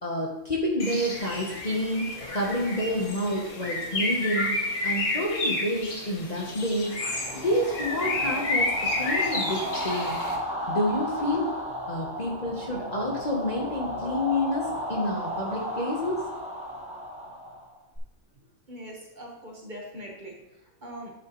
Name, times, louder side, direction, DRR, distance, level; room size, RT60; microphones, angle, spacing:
voice 1, 0.0-4.6 4.8-7.0 7.4-10.2 10.7-11.4 11.9-16.2, left 1 dB, 35° left, -2 dB, 1.0 m, -29 dB
Bird, 0.8-10.4, left 2 dB, 80° left, 1.7 m, -30 dB
sound 1, 6.8-18.0, equal, 5° right, 1.2 m, -34 dB
voice 2, 18.7-21.1, equal, 35° right, -1 dB, 1.3 m, -42 dB
8.9 x 6.4 x 3.1 m, 0.94 s
omnidirectional pair, 1.5 m